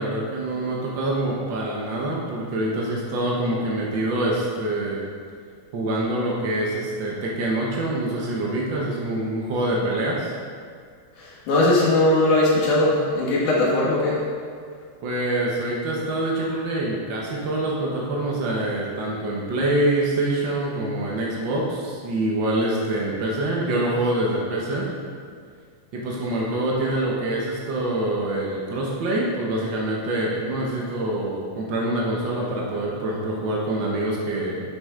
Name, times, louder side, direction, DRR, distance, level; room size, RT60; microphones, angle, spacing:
voice 1, 0.0-5.0 5.7-10.3 15.0-24.9 25.9-34.6, right 1 dB, 75° right, -3 dB, 1.0 m, -25 dB
voice 2, 11.2-14.2, left 2 dB, 70° left, -5 dB, 3.1 m, -19 dB
11.0 x 6.3 x 3.8 m, 2.1 s
omnidirectional pair, 3.8 m